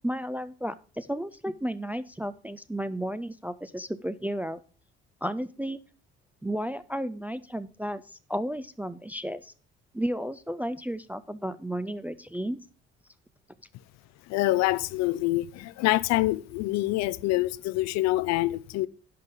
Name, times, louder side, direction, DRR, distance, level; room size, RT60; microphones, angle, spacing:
voice 1, 0.0-4.6 5.2-5.8 6.4-9.5 9.9-12.6, equal, 5° right, 0.4 m, -33 dB
voice 2, 14.3-18.9, left 17 dB, 55° left, 0.5 m, -26 dB
11.0 x 5.4 x 5.2 m
figure-of-eight pair, 50°, 32 cm